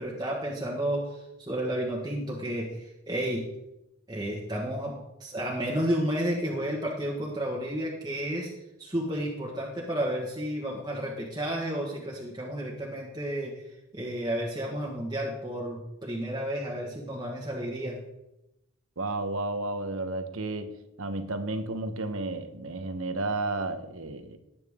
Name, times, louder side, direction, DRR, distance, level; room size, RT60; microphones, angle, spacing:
voice 1, 0.0-3.4 4.1-8.5 8.8-13.5 13.9-18.0, right 1 dB, 20° right, -3 dB, 1.5 m, -31 dB
voice 2, 19.0-20.7 21.0-24.4, right 2 dB, 80° right, 9 dB, 1.1 m, -32 dB
17.5 x 8.9 x 3.7 m, 0.91 s
head